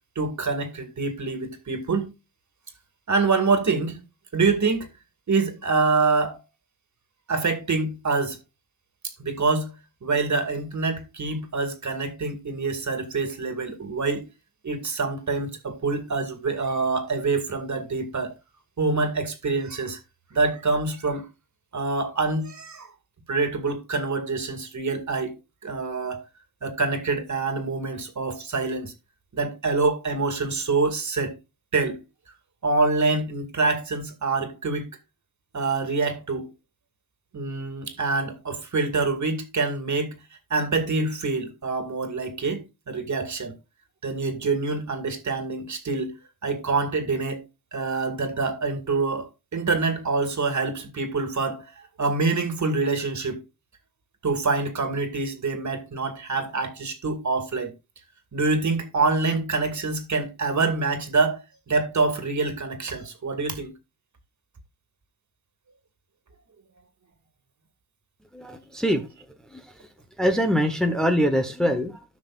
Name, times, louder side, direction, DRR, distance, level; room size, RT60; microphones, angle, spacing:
voice 1, 0.2-2.1 3.1-4.0 4.3-4.9 5.3-6.4 7.3-8.4 9.2-9.7 10.0-14.3 14.6-18.3 18.8-20.0 20.3-21.3 21.7-22.9 23.3-25.3 25.6-26.2 26.6-28.9 29.3-31.3 31.7-32.0 32.6-34.9 35.5-36.5 37.3-40.2 40.5-43.5 44.0-46.2 46.4-47.4 47.7-51.7 52.0-53.4 54.2-57.7 58.3-61.4 61.7-63.7, right 3 dB, 45° right, 2.3 m, -26 dB
voice 2, 68.3-69.1 69.5-69.6 70.2-72.0, equal, ahead, 1.1 m, -23 dB
14.5 x 6.1 x 2.5 m
cardioid pair, 90°, 41 cm